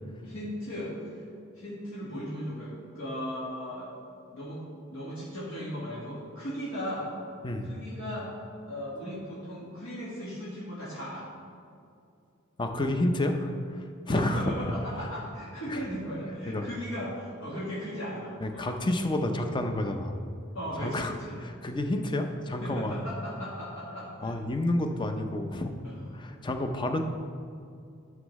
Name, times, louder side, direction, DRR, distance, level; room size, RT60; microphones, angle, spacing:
voice 1, 0.2-0.9 1.5-3.9 4.3-4.6 4.9-7.1 7.6-8.3 8.7-11.3 14.0-18.8 20.5-21.4 22.6-24.3 25.8-26.0, equal, 70° left, -8 dB, 1.6 m, -37 dB
voice 2, 12.6-14.5 15.7-15.8 16.5-16.7 18.4-20.2 20.8-21.1 21.4-23.0 24.2-25.7 26.1-27.0, left 1 dB, 25° left, 5 dB, 0.6 m, -29 dB
11.5 x 6.3 x 3.1 m, 2.4 s
head